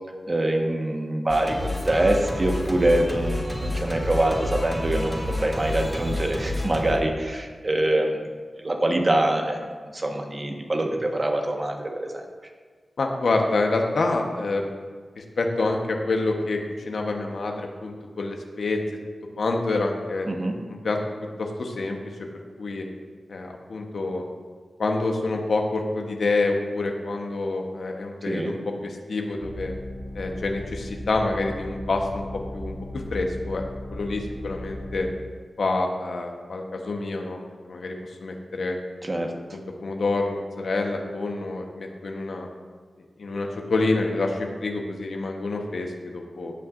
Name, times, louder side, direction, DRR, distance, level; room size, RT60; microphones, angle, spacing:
voice 1, 0.3-8.3 8.6-12.2 20.3-20.6 28.2-28.5 39.0-39.3, right 1 dB, 40° right, 2 dB, 1.4 m, -24 dB
Singing, 1.3-7.0, left 1 dB, 10° left, 2.2 m, -29 dB
voice 2, 13.0-14.8 15.2-16.6 16.8-18.8 19.4-20.3 20.7-21.0 21.4-22.0 22.3-22.9 23.3-24.2 24.8-28.6 28.8-29.7 30.1-32.2 32.5-33.6 33.9-35.1 35.6-37.4 37.6-37.9 38.2-38.8 39.8-42.5 43.2-46.5, left 3 dB, 75° left, 2 dB, 1.1 m, -27 dB
sound 1, 29.4-35.0, left 1 dB, 85° right, 2.3 m, -36 dB
16.5 x 5.9 x 2.6 m, 1.5 s
cardioid pair, 45°, 0 cm